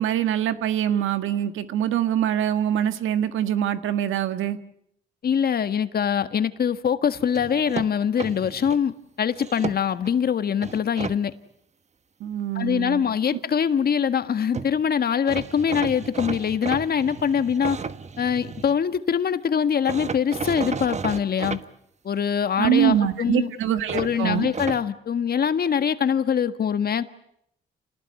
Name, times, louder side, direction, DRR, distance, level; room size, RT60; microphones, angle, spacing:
voice 1, 0.0-4.6 12.2-13.0 22.6-24.5, right 10 dB, 80° right, 11 dB, 1.7 m, -24 dB
voice 2, 5.2-11.3 12.5-17.8 18.2-21.6 22.0-23.5 23.9-27.1, left 7 dB, 50° left, 11 dB, 1.7 m, -23 dB
sound 1, 7.3-8.8 9.3-10.1 10.6-11.2 14.3-14.4 14.5-14.7 15.3-18.7 19.8-21.6 23.9-24.8, right 5 dB, 35° right, 1.3 m, -33 dB
29.0 x 18.5 x 9.6 m, 0.75 s
cardioid pair, 90°, 20 cm